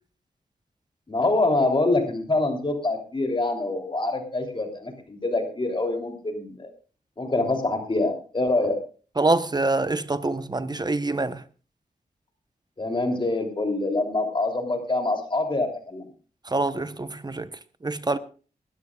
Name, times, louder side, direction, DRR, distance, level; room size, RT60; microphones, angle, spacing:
voice 1, 1.1-6.7 7.2-8.8 12.8-16.1, left 2 dB, 35° left, 3.3 m, -25 dB
voice 2, 9.2-11.4 16.5-17.5 17.8-18.2, right 2 dB, 25° right, 1.0 m, -25 dB
21.0 x 13.0 x 2.4 m
wide cardioid pair, 80°, 15 cm